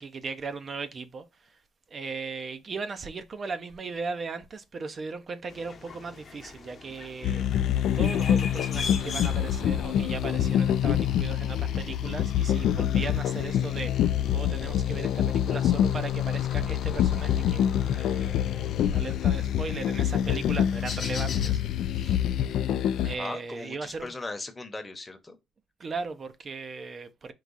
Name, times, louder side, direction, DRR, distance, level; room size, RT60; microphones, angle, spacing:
voice 1, 0.0-1.6 1.9-22.2 23.0-24.1 25.8-27.3, right 4 dB, 45° right, 0.6 m, -38 dB
sound 1, 5.5-21.5, left 5 dB, 50° left, 0.9 m, -43 dB
sound 2, 7.2-23.1, left 10 dB, 80° left, 0.3 m, -26 dB
voice 2, 23.1-25.4, left 2 dB, 20° left, 0.9 m, -38 dB
4.7 x 2.4 x 4.0 m
cardioid pair, 90°, 0 cm